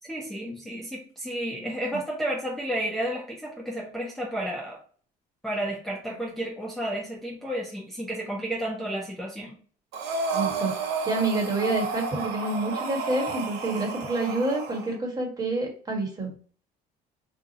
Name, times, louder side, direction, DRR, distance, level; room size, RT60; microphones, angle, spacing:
voice 1, 0.0-4.8 5.4-9.5, right 1 dB, ahead, -2 dB, 0.6 m, -32 dB
Breathing, 9.9-14.9, right 4 dB, 85° right, 0.7 m, -31 dB
voice 2, 10.3-10.7 11.0-16.3, right 2 dB, 20° right, -1 dB, 1.3 m, -28 dB
2.7 x 2.3 x 3.9 m, 0.44 s
cardioid pair, 110°, 17 cm